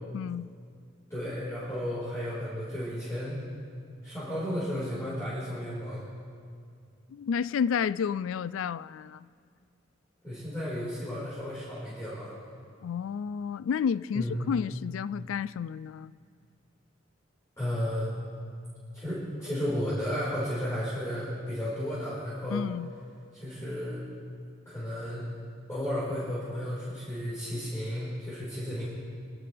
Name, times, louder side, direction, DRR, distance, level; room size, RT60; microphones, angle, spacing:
voice 1, 0.1-0.5 7.1-9.3 12.8-16.1 22.5-22.9, left 7 dB, 80° left, 0.3 m, -31 dB
voice 2, 1.1-3.4 4.0-6.0 10.2-12.3 14.1-14.5 17.6-18.2 18.9-22.6 23.3-24.0 24.6-25.2 25.7-28.9, equal, 15° left, 4.9 m, -33 dB
29.5 x 12.0 x 3.5 m
head